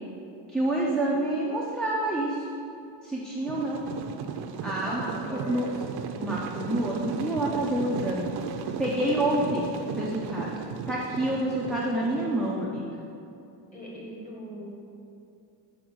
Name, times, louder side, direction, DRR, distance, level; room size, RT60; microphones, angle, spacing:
voice 1, 0.5-2.5 3.0-3.8 4.6-5.7 6.2-8.3 8.8-10.5 10.9-12.8, right 1 dB, ahead, -6 dB, 0.4 m, -28 dB
sound 1, 3.5-12.6, right 6 dB, 60° right, 0.5 m, -36 dB
voice 2, 4.8-6.0 9.0-9.5 13.7-14.7, equal, 20° left, -5 dB, 1.7 m, -41 dB
5.2 x 5.0 x 6.1 m, 2.6 s
cardioid pair, 160°, 44 cm